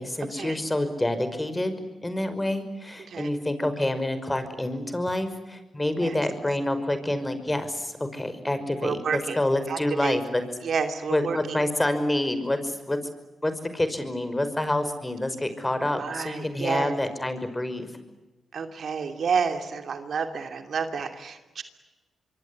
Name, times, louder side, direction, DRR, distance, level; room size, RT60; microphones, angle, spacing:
voice 1, 0.0-1.8 2.0-10.4 11.1-13.0 13.4-17.9, left 1 dB, 20° left, 10 dB, 5.6 m, -27 dB
voice 2, 8.8-9.4 9.7-10.2 10.6-11.7 15.9-17.0 18.5-21.6, right 6 dB, 65° right, 7 dB, 2.7 m, -30 dB
26.0 x 23.0 x 9.7 m, 1.1 s
supercardioid pair, 45°, 0 cm